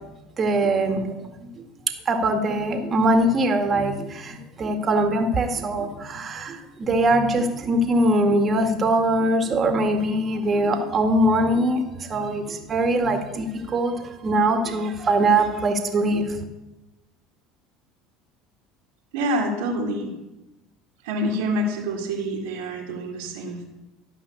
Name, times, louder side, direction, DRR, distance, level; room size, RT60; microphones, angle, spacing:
voice 1, 0.4-1.1 2.1-16.4, right 1 dB, 35° right, 5 dB, 2.0 m, -22 dB
voice 2, 19.1-20.1 21.0-23.6, equal, 80° right, -3 dB, 2.2 m, -27 dB
13.5 x 5.6 x 7.2 m, 1.0 s
hypercardioid pair, 85°, 0 cm